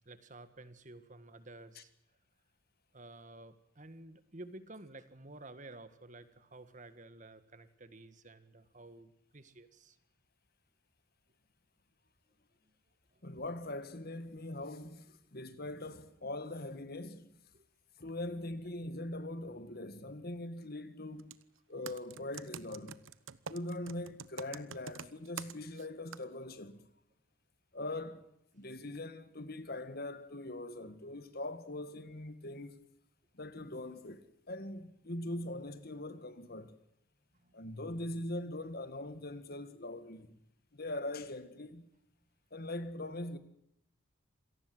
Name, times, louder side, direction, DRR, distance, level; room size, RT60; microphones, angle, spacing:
voice 1, 0.1-1.9 2.9-10.0 13.1-13.2 17.5-17.7 37.3-37.6, right 2 dB, 35° right, 1.7 m, -52 dB
voice 2, 13.2-17.4 18.0-21.4 21.7-23.0 23.5-26.9 27.7-28.3 28.5-32.8 33.3-36.8 37.5-40.4 40.7-41.9 42.5-43.4, left 1 dB, 45° left, 1.8 m, -42 dB
Computer keyboard, 21.2-21.4 21.9-25.9 26.1-26.2, right 6 dB, 70° right, 1.0 m, -45 dB
27.0 x 18.5 x 7.8 m
head